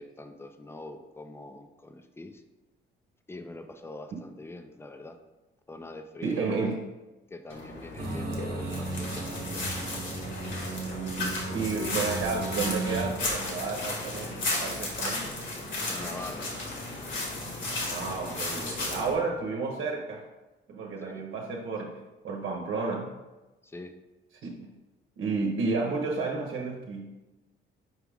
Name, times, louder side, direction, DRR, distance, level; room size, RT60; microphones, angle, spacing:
voice 1, 0.0-2.4 3.3-5.2 5.7-6.7 7.3-10.2 15.9-16.5 19.1-19.5 21.0-21.3 23.6-23.9, left 2 dB, 10° left, 7 dB, 0.6 m, -44 dB
voice 2, 6.2-6.8 11.2-15.3 17.9-20.3 20.7-23.1 24.4-24.8 25.2-27.1, right 4 dB, 75° right, 0 dB, 1.0 m, -32 dB
sound 1, 7.5-19.1, left 2 dB, 65° left, 1.9 m, -34 dB
sound 2, 8.0-13.1, right 3 dB, 50° right, 1.2 m, -35 dB
6.2 x 4.8 x 3.5 m, 1.1 s
cardioid pair, 90°, 20 cm